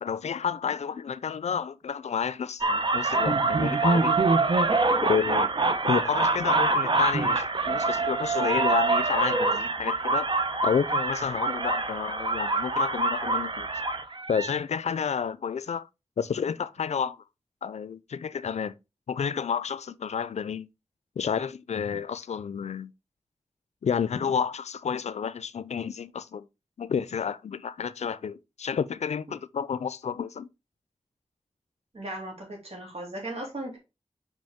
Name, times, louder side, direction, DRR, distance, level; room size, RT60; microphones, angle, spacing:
voice 1, 0.0-4.2 5.0-5.5 5.8-10.3 10.6-13.7 14.3-15.9 16.2-17.2 17.6-18.8 19.1-20.7 21.2-22.9 23.8-26.5 26.8-30.5, left 7 dB, 90° left, 0.4 m, -30 dB
sound 1, 2.6-14.6, right 3 dB, 45° right, 0.8 m, -25 dB
voice 2, 31.9-33.8, right 1 dB, 65° right, 3.0 m, -37 dB
5.3 x 5.2 x 3.5 m
wide cardioid pair, 70°, 11 cm